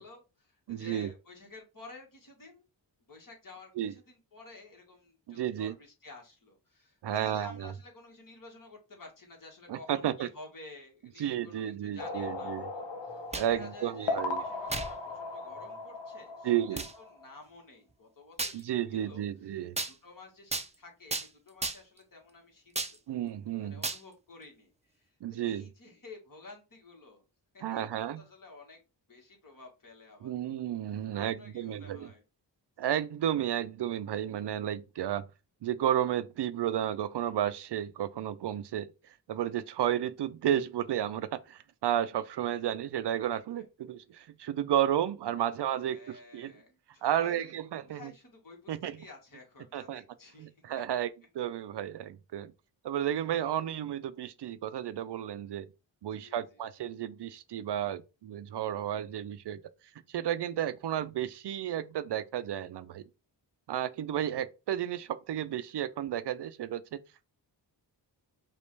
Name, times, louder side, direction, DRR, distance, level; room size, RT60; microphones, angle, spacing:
voice 1, 0.0-2.6 3.1-19.2 19.9-22.7 23.6-25.1 25.4-27.2 27.5-28.8 29.1-30.5 31.2-32.2 45.9-47.5 47.8-50.5 53.3-53.7 56.1-56.6, left 3 dB, 45° left, 1.7 m, -52 dB
voice 2, 0.7-1.1 3.8-3.9 5.3-5.7 7.0-7.7 9.7-10.3 11.2-12.7 13.3-14.4 16.4-16.8 18.5-19.8 23.1-23.8 25.2-25.7 27.6-28.2 30.2-32.1 32.8-35.2 35.6-38.9 39.3-46.5 47.0-48.1 48.7-49.0 49.7-50.0 50.4-51.1 51.4-52.5 52.8-55.7 56.0-59.6 60.1-63.1 63.7-67.0, right 11 dB, 65° right, 0.5 m, -32 dB
sound 1, 12.0-17.3, left 3 dB, 75° left, 0.9 m, -38 dB
sound 2, 13.1-13.6 14.7-15.0 15.6-15.7 16.8-16.9 18.4-18.6 19.8-19.9 20.5-20.7 21.1-21.3 21.6-22.0 22.8-23.0 23.8-24.0, right 3 dB, 15° right, 0.5 m, -34 dB
5.2 x 2.5 x 3.2 m
cardioid pair, 70°, 44 cm